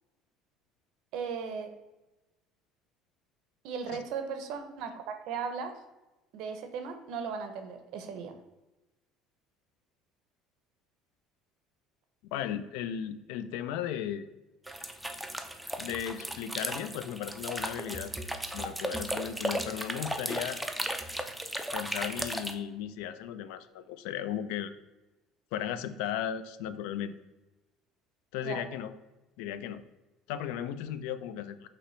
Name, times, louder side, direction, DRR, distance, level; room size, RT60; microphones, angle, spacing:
voice 1, 1.1-1.7 3.6-5.7 6.3-8.3 28.4-28.6, right 6 dB, 65° right, 8 dB, 0.5 m, -37 dB
voice 2, 12.3-14.3 15.8-18.1 18.5-20.6 21.7-24.7 25.5-27.2 28.3-28.9 29.4-29.8 30.3-31.7, left 10 dB, 85° left, 12 dB, 0.3 m, -36 dB
sound 1, 14.7-22.5, right 1 dB, 5° right, 0.3 m, -36 dB
5.6 x 3.0 x 3.1 m, 1.0 s
cardioid pair, 155°, 0 cm